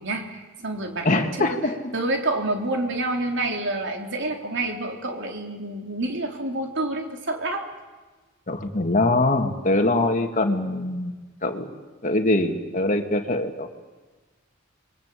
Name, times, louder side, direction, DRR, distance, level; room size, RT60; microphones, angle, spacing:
voice 1, 0.0-1.6 1.9-7.7, right 2 dB, 60° right, 3 dB, 3.7 m, -28 dB
voice 2, 1.0-1.9 8.5-11.1 11.4-11.7 12.0-13.7, left 2 dB, 40° left, 5 dB, 2.3 m, -23 dB
28.5 x 22.5 x 8.5 m, 1.3 s
head